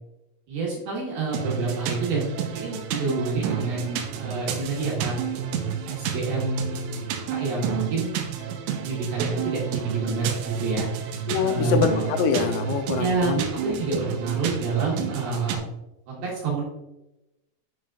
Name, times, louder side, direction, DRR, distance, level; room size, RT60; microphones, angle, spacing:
voice 1, 0.5-2.3 2.5-5.2 5.9-6.9 7.3-8.1 8.8-10.9 11.4-11.9 13.0-15.6 16.1-16.6, right 4 dB, 65° right, -4 dB, 2.7 m, -28 dB
sound 1, 1.3-15.6, right 8 dB, 90° right, 3.3 m, -31 dB
voice 2, 11.3-13.4, left 6 dB, 90° left, 6 dB, 3.3 m, -24 dB
9.3 x 6.2 x 2.4 m, 0.94 s
omnidirectional pair, 5.9 m